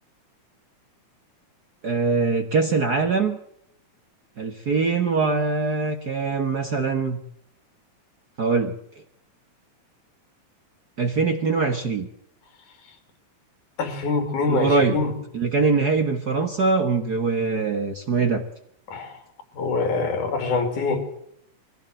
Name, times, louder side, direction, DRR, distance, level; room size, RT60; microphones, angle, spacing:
voice 1, 1.8-3.4 4.4-7.2 8.4-8.7 11.0-12.1 14.5-15.0 15.3-18.4, right 4 dB, 50° right, 6 dB, 1.2 m, -22 dB
voice 2, 13.8-15.1 18.9-19.1 19.5-21.0, left 4 dB, 80° left, 7 dB, 4.2 m, -24 dB
22.5 x 16.0 x 7.8 m, 0.73 s
omnidirectional pair, 3.5 m